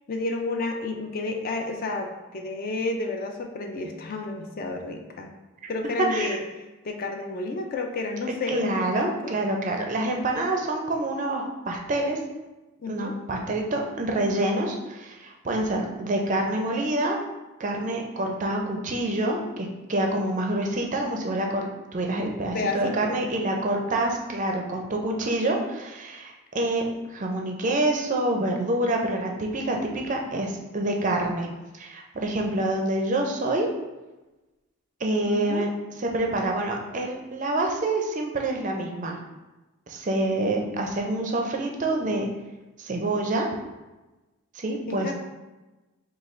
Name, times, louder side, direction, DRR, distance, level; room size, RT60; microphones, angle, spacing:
voice 1, 0.1-5.3 5.7-9.3 12.8-13.2 22.2-22.9 35.3-35.7 44.9-45.1, left 3 dB, 40° left, 3 dB, 0.4 m, -31 dB
voice 2, 6.0-6.4 8.5-12.2 12.9-17.2 17.6-21.7 21.9-31.5 31.7-33.7 35.0-35.7 36.0-39.2 39.9-42.3 42.8-43.5 44.5-45.1, right 1 dB, 35° right, 1 dB, 0.4 m, -27 dB
5.1 x 2.3 x 3.1 m, 1.1 s
head